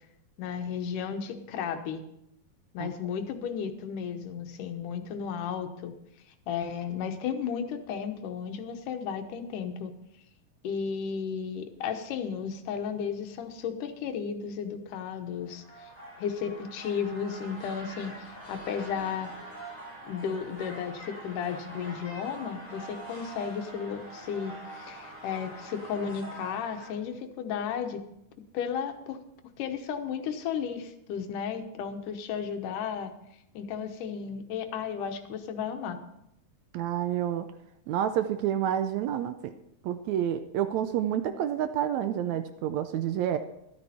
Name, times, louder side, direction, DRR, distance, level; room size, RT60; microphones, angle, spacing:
voice 1, 0.4-2.0 2.7-5.9 6.5-9.9 10.6-15.9 16.2-19.3 20.1-28.0 28.5-29.2 29.6-33.1 33.5-36.0, left 7 dB, 80° left, 7 dB, 2.6 m, -34 dB
sound 1, 15.3-26.9, right 1 dB, 5° right, 5.7 m, -44 dB
voice 2, 36.7-37.5 37.9-39.5 39.8-43.4, right 10 dB, 80° right, 9 dB, 1.7 m, -29 dB
12.5 x 12.5 x 4.2 m, 0.80 s
omnidirectional pair, 3.6 m